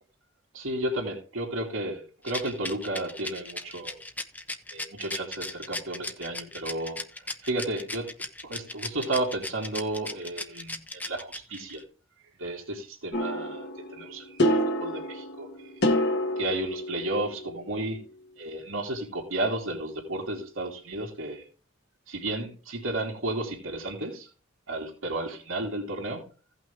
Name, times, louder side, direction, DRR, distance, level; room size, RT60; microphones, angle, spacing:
voice 1, 0.5-4.0 4.7-7.0 7.4-8.1 8.4-11.8 12.4-15.8 16.4-18.0 18.4-21.4 22.1-24.3 24.7-26.3, right 2 dB, 90° right, -2 dB, 2.6 m, -33 dB
Rattle, 2.2-11.8, left 2 dB, 10° left, 0.8 m, -36 dB
sound 1, 13.1-17.6, equal, 55° left, 1.5 m, -28 dB
16.5 x 5.8 x 3.5 m, 0.36 s
head